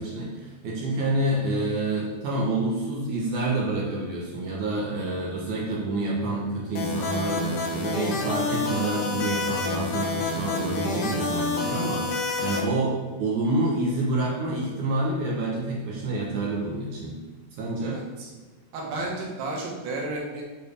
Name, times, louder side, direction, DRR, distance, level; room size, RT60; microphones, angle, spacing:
voice 1, 0.0-17.1 17.6-18.0, right 2 dB, 65° right, -5 dB, 2.3 m, -28 dB
sound 1, 6.8-12.6, left 3 dB, 65° left, 2.3 m, -28 dB
voice 2, 17.8-18.3 18.7-20.4, right 2 dB, 90° right, -2 dB, 3.4 m, -32 dB
8.4 x 4.6 x 3.5 m, 1.3 s
omnidirectional pair, 4.5 m